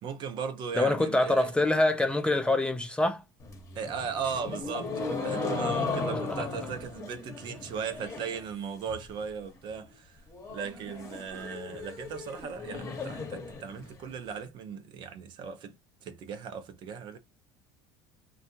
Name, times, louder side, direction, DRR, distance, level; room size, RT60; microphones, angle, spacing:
voice 1, 0.0-1.5 3.7-10.2 10.5-15.7 16.0-17.2, right 6 dB, 55° right, 0.6 m, -37 dB
voice 2, 0.8-3.2 6.3-6.5, left 2 dB, 10° left, 0.5 m, -25 dB
sound 1, 3.4-8.4 8.7-9.2 9.6-9.7 9.9-10.0 10.3-14.3, left 4 dB, 30° left, 0.9 m, -36 dB
2.7 x 2.3 x 2.7 m
supercardioid pair, 90°, 10 cm